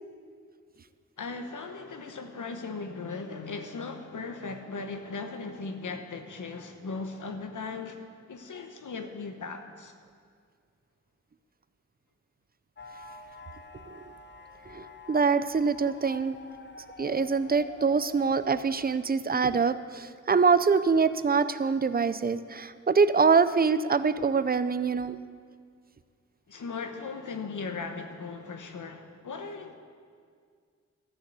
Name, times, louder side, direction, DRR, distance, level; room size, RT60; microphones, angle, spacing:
voice 1, 1.2-8.0 8.3-9.9 26.5-29.7, left 4 dB, 85° left, 6 dB, 1.1 m, -38 dB
sound 1, 12.8-18.9, left 3 dB, 40° left, 0.7 m, -47 dB
voice 2, 14.7-16.4 17.0-25.2, right 5 dB, 30° right, 13 dB, 0.4 m, -24 dB
13.5 x 6.6 x 8.1 m, 2.1 s
wide cardioid pair, 120°, 30 cm